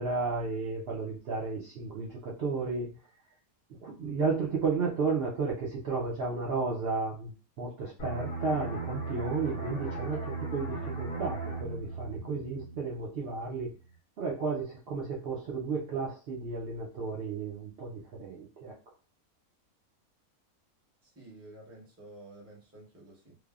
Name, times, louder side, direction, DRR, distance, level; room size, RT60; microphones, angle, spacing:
voice 1, 0.0-3.0 3.8-13.7 14.2-18.7, right 4 dB, 65° right, -3 dB, 0.6 m, -33 dB
sound 1, 8.0-13.4 13.7-13.9, right 3 dB, 60° left, 0.5 m, -37 dB
voice 2, 21.0-23.4, right 1 dB, 15° right, -3 dB, 0.6 m, -51 dB
3.3 x 2.0 x 2.3 m, 0.35 s
omnidirectional pair, 1.5 m